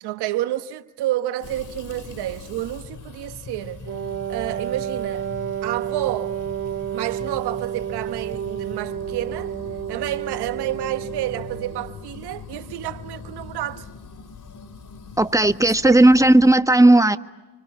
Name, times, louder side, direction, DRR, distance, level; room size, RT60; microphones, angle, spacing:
voice 1, 0.0-3.9 4.3-5.3 5.6-6.4 6.9-9.5 9.9-13.9 15.8-16.0, right 14 dB, 80° right, 1.2 m, -29 dB
sound 1, 1.4-16.5, left 5 dB, 50° left, 3.3 m, -41 dB
Wind instrument woodwind instrument, 3.8-11.9, right 10 dB, 50° right, 2.6 m, -30 dB
voice 2, 15.2-17.2, right 1 dB, 10° right, 1.4 m, -14 dB
28.0 x 25.0 x 8.5 m
supercardioid pair, 50°, 39 cm